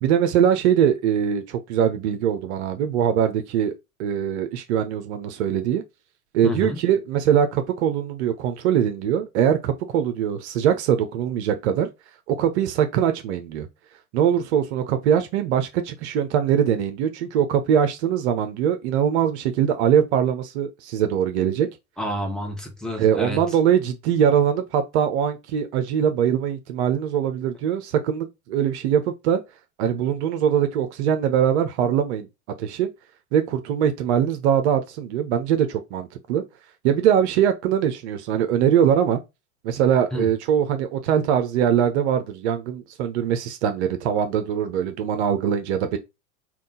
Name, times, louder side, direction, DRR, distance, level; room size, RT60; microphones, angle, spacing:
voice 1, 0.0-3.7 4.0-5.8 6.3-11.9 12.3-13.7 14.1-21.7 23.0-29.4 29.8-32.3 32.6-32.9 33.3-36.4 36.8-39.2 39.6-46.0, right 9 dB, 55° right, 0.7 m, -22 dB
voice 2, 6.4-6.8 22.0-23.4 40.1-40.3, left 1 dB, ahead, 1.1 m, -29 dB
3.7 x 2.4 x 3.7 m
figure-of-eight pair, 85°, 41 cm